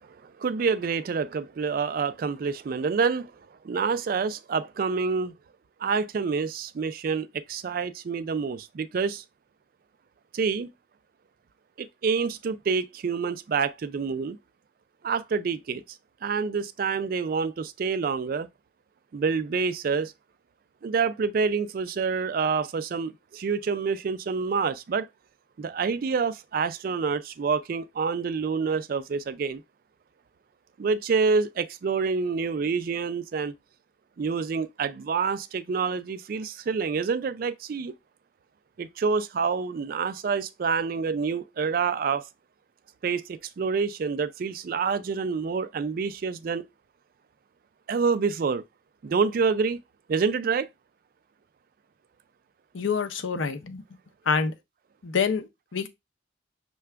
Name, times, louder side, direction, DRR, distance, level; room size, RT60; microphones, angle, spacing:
voice 1, 0.2-3.3 3.6-5.3 5.8-9.2 10.3-10.7 11.8-14.4 15.0-15.8 16.2-18.5 19.1-20.1 20.8-25.1 25.6-29.6 30.8-33.5 34.2-37.9 38.8-42.2 43.0-46.6 47.9-48.6 49.0-49.8 50.1-50.7, right 5 dB, 50° right, 0.3 m, -27 dB
voice 2, 52.7-53.8 54.3-54.5 55.0-55.9, left 5 dB, 90° left, 0.6 m, -27 dB
5.7 x 2.3 x 3.3 m
head